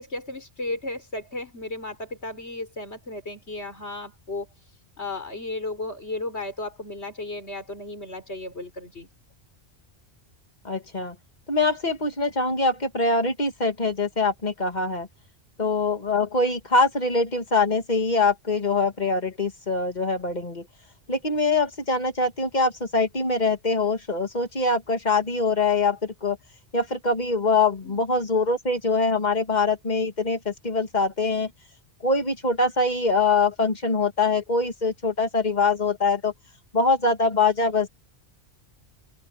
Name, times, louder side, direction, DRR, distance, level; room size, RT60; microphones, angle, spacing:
voice 1, 0.0-4.5 5.0-9.1 27.8-28.0, left 2 dB, 85° left, 5.1 m, -34 dB
voice 2, 10.6-11.1 11.5-15.1 15.6-20.7 21.1-26.4 26.7-31.5 32.0-36.3 36.7-37.9, left 3 dB, 40° left, 2.3 m, -23 dB
omnidirectional pair, 1.1 m